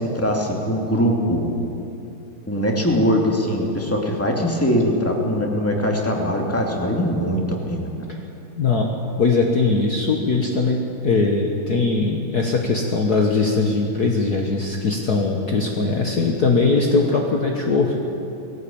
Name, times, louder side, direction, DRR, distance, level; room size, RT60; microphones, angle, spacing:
voice 1, 0.0-1.4 2.5-7.9, equal, 5° left, 0 dB, 2.5 m, -21 dB
voice 2, 8.6-8.9 9.2-18.0, left 3 dB, 50° left, 1 dB, 1.7 m, -20 dB
19.5 x 17.5 x 8.7 m, 2.8 s
omnidirectional pair, 2.4 m